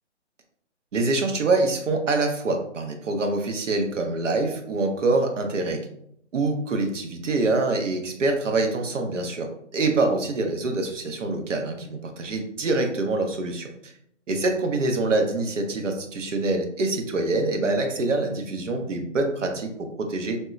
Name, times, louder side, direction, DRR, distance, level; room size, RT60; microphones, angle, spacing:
voice 1, 0.9-5.8 6.3-13.9 14.3-20.4, right 2 dB, 75° right, 4 dB, 0.8 m, -25 dB
3.5 x 2.0 x 2.6 m, 0.71 s
hypercardioid pair, 150°, 37 cm